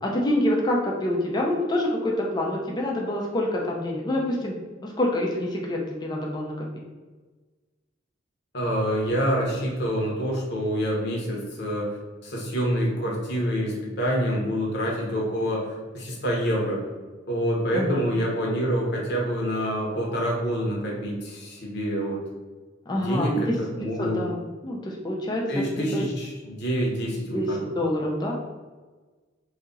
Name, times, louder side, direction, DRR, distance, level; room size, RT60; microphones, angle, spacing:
voice 1, 0.0-6.7 17.7-18.0 22.9-23.6 24.0-26.1 27.3-28.3, left 1 dB, 20° left, -2 dB, 0.5 m, -27 dB
voice 2, 8.5-11.9 12.2-16.8 17.3-22.2 22.9-24.2 25.5-27.6, equal, 60° left, -3 dB, 1.0 m, -27 dB
2.8 x 2.7 x 3.7 m, 1.3 s
head